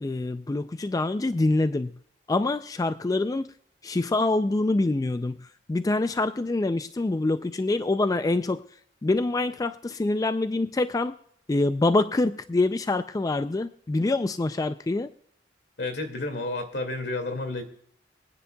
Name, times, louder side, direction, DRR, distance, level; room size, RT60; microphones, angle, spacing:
voice 1, 0.0-1.9 2.3-3.5 3.8-5.4 5.7-8.6 9.0-11.1 11.5-15.1, left 2 dB, 20° left, 11 dB, 0.3 m, -25 dB
voice 2, 15.8-17.6, left 2 dB, 75° left, 6 dB, 2.1 m, -31 dB
23.5 x 9.7 x 2.3 m, 0.66 s
head